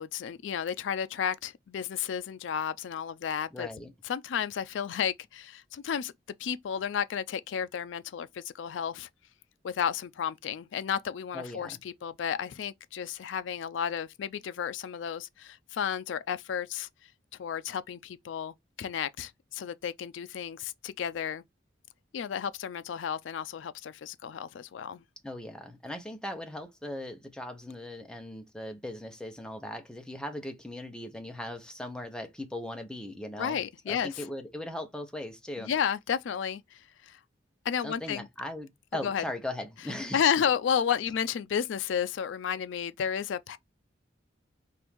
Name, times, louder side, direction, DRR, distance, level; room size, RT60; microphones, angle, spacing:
voice 1, 0.0-3.7 4.0-6.1 6.4-9.1 9.6-16.9 17.4-21.4 22.1-25.0 33.4-34.2 35.6-37.2 37.6-38.3 39.0-39.2 40.1-43.6, left 8 dB, 75° left, 0.4 m, -32 dB
voice 2, 3.5-3.9 11.3-11.8 25.2-35.7 37.8-40.2, left 1 dB, 5° left, 0.8 m, -39 dB
4.5 x 2.6 x 3.5 m
head